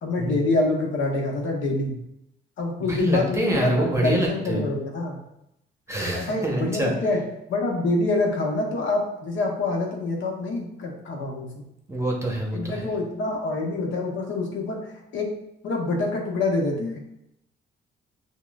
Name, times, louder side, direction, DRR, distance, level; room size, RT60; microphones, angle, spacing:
voice 1, 0.0-1.9 2.6-5.2 6.1-7.2 7.5-11.6 12.5-15.3 15.6-17.0, left 2 dB, 75° left, 0 dB, 0.9 m, -26 dB
voice 2, 2.9-4.6 5.9-6.9 11.9-12.9, right 1 dB, 15° right, -1 dB, 0.9 m, -26 dB
5.9 x 2.2 x 2.4 m, 0.80 s
cardioid pair, 90°, 20 cm